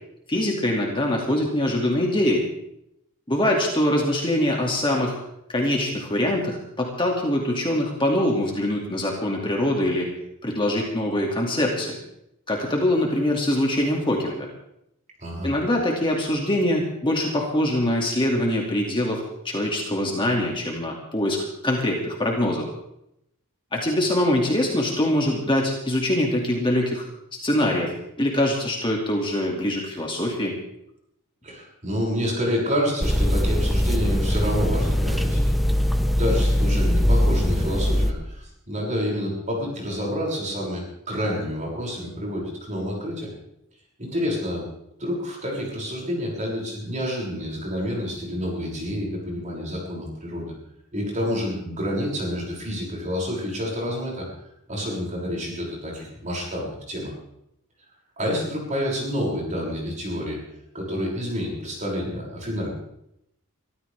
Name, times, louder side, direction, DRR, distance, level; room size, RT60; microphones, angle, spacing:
voice 1, 0.3-2.4 3.3-5.2 5.5-10.1 10.4-12.0 12.5-14.5 15.4-22.7 23.7-27.0 27.4-30.6, left 1 dB, 20° left, -1 dB, 2.4 m, -23 dB
voice 2, 15.2-15.5 31.4-35.5 36.1-43.3 44.0-44.7 45.0-50.5 50.9-54.3 54.7-57.1 58.2-60.4 60.7-62.7, equal, 35° right, -3 dB, 6.6 m, -28 dB
sound 1, 33.0-38.1, equal, ahead, 0.9 m, -21 dB
23.5 x 14.0 x 3.5 m, 0.80 s
head